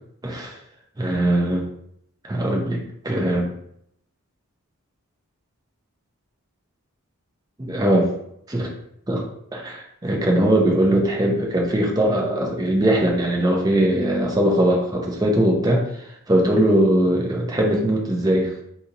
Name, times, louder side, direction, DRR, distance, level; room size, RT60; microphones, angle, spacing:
voice 1, 0.2-0.5 1.0-1.7 2.2-2.8 3.0-3.5 7.6-8.1 8.5-8.7 9.1-9.2 9.5-18.5, right 1 dB, 15° right, 0 dB, 0.5 m, -20 dB
2.8 x 2.8 x 3.7 m, 0.73 s
head